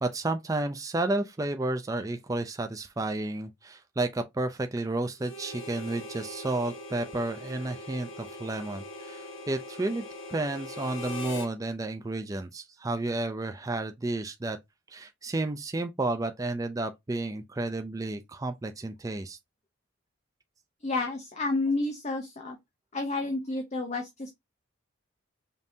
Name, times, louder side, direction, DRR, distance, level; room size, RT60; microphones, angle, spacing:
voice 1, 0.0-14.6 14.9-19.4, right 2 dB, 15° right, 0.3 m, -32 dB
Harmonica, 5.2-11.5, left 1 dB, 65° left, 1.2 m, -41 dB
voice 2, 20.8-22.6 22.9-24.3, left 2 dB, 35° left, 0.7 m, -30 dB
5.2 x 2.7 x 2.7 m
head